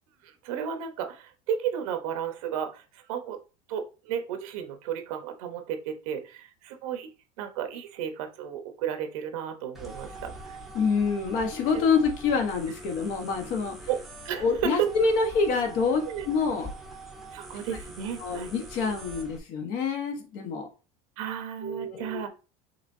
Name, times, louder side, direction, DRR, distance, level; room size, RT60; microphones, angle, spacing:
voice 1, 0.2-3.4 3.7-7.1 7.4-10.6 11.7-11.8 13.9-14.0 14.2-14.9 16.0-16.3 17.3-18.5 21.2-22.3, right 9 dB, 85° right, 6 dB, 1.0 m, -33 dB
sound 1, 9.7-19.4, right 2 dB, ahead, 0.8 m, -43 dB
voice 2, 10.7-13.9 14.4-16.7 18.2-20.7 21.6-22.3, left 4 dB, 55° left, 4 dB, 1.2 m, -27 dB
5.7 x 3.5 x 2.6 m, 0.32 s
cardioid pair, 165°, 17 cm